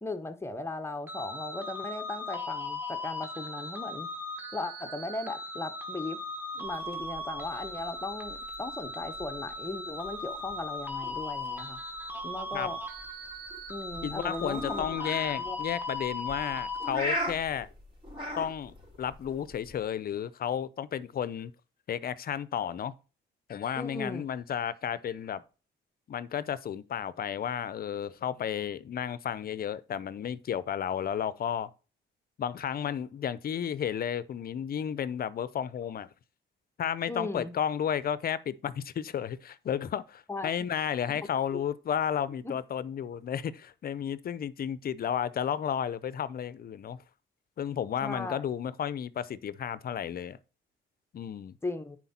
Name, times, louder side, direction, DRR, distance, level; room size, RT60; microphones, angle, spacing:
voice 1, 0.0-4.1 4.5-6.2 6.5-11.8 12.2-12.8 13.7-14.9 15.4-15.6 23.8-24.2 37.1-37.5 40.3-40.5 41.1-41.2 41.5-41.6 42.4-42.6 48.0-48.4 51.6-52.0, left 2 dB, 10° left, 1.0 m, -37 dB
sound 1, 1.1-16.9, left 2 dB, 10° right, 1.3 m, -38 dB
sound 2, 6.6-19.8, equal, 25° right, 4.2 m, -41 dB
voice 2, 14.0-17.7 18.4-21.5 21.9-22.9 23.5-25.4 26.1-31.7 32.4-36.1 36.8-47.0 47.6-50.4 51.1-51.6, left 9 dB, 50° left, 0.6 m, -32 dB
9.9 x 4.4 x 4.3 m
cardioid pair, 90°, 20 cm